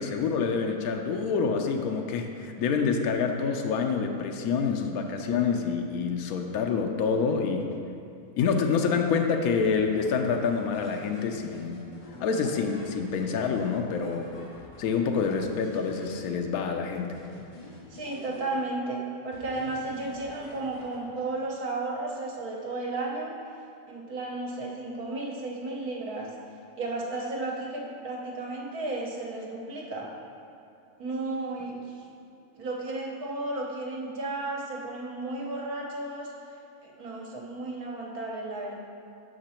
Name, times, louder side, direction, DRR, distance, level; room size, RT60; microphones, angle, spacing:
voice 1, 0.0-7.8 8.4-11.9 12.2-14.3 14.8-17.2, left 5 dB, 75° left, 4 dB, 1.1 m, -27 dB
sound 1, 9.7-16.6 16.9-18.9 19.3-21.4, left 1 dB, 30° left, 2.2 m, -48 dB
voice 2, 17.9-23.4 23.9-26.3 26.8-30.1 31.0-31.9 32.6-36.3 36.8-38.8, right 2 dB, 75° right, -2 dB, 1.7 m, -33 dB
7.7 x 6.0 x 4.3 m, 2.6 s
omnidirectional pair, 1.6 m